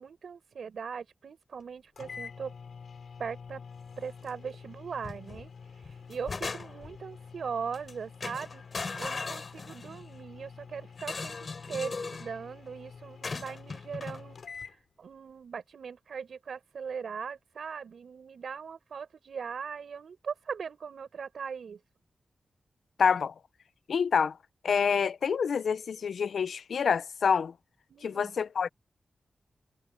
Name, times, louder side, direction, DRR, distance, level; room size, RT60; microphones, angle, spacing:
voice 1, 0.0-2.5 3.2-3.6 4.0-21.8 27.9-28.4, right 6 dB, 75° right, 7.1 m, -40 dB
sound 1, 1.6-1.7 2.0-14.8, left 5 dB, 65° left, 5.5 m, -48 dB
sound 2, 5.0-5.5 5.8-7.0 7.7-7.9 8.2-10.1 11.0-12.3 13.2-14.2, left 4 dB, 40° left, 3.6 m, -38 dB
voice 2, 23.0-23.3 23.9-24.3 24.6-27.5 28.0-28.7, left 6 dB, 85° left, 0.6 m, -27 dB
wide cardioid pair, 175°, 0 cm